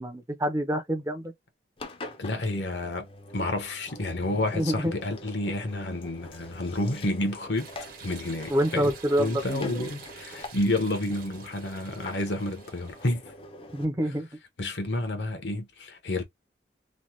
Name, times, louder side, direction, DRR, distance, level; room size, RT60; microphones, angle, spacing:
voice 1, 0.0-1.3 4.5-4.9 8.5-9.9 13.7-14.3, equal, 15° right, 0.5 m, -27 dB
Engine, 1.8-13.9, left 2 dB, 30° left, 0.5 m, -46 dB
voice 2, 2.2-3.1 3.3-7.7 8.0-8.9 9.2-13.3 14.6-16.2, left 2 dB, 80° left, 1.0 m, -30 dB
sound 1, 7.6-13.1, right 6 dB, 50° right, 0.9 m, -48 dB
3.1 x 2.1 x 2.9 m
head